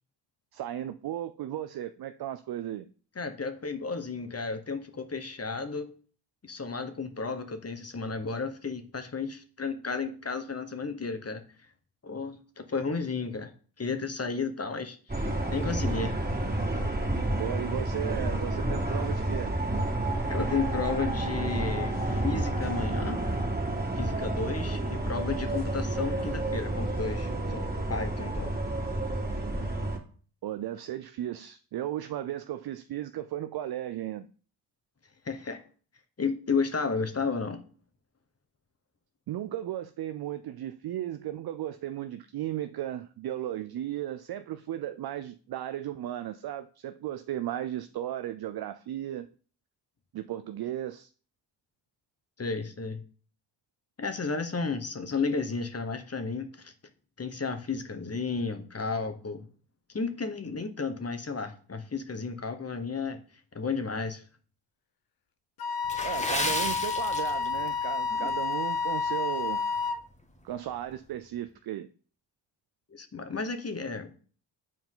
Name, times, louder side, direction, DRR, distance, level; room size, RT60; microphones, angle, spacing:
voice 1, 0.5-2.9 17.4-19.6 30.4-34.3 39.3-49.3 50.1-51.1 66.0-69.6 70.4-71.9, right 12 dB, 55° right, 0.5 m, -35 dB
voice 2, 3.1-5.9 6.4-11.4 12.0-13.5 13.8-16.1 20.3-23.2 23.9-28.5 35.2-35.6 36.2-37.6 52.4-53.0 54.0-56.7 57.2-59.5 59.9-63.2 63.5-64.2 68.1-68.3 72.9-74.1, left 4 dB, 30° left, 1.2 m, -33 dB
sound 1, 15.1-30.0, right 1 dB, 20° right, 2.3 m, -30 dB
Wind instrument woodwind instrument, 65.6-70.1, left 5 dB, 50° left, 0.7 m, -30 dB
Water / Splash splatter, 65.8-67.7 68.0-68.3 68.9-69.1 69.5-69.6, left 1 dB, 15° left, 1.4 m, -33 dB
7.6 x 4.6 x 3.8 m
supercardioid pair, 45°, 46 cm